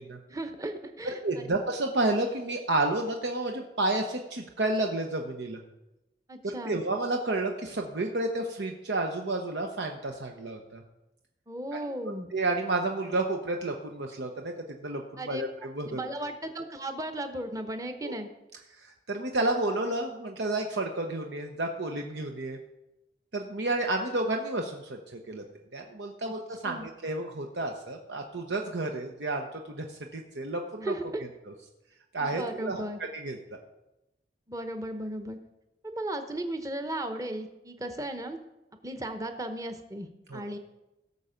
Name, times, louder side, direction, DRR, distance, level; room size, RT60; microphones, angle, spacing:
voice 1, 0.3-1.5 6.3-6.8 11.5-12.3 15.2-15.4 15.8-18.3 26.6-26.9 30.8-31.2 32.2-33.0 34.5-35.4 35.8-38.4 38.8-40.6, right 1 dB, 20° right, 7 dB, 0.8 m, -36 dB
voice 2, 1.0-5.6 6.4-10.8 11.7-11.8 12.3-14.5 14.8-16.0 18.0-18.2 18.7-22.6 23.3-25.4 25.7-30.9 32.1-32.8 33.1-33.6 40.3-40.4, right 2 dB, 85° right, 3 dB, 1.0 m, -31 dB
16.5 x 7.0 x 5.1 m, 0.94 s
head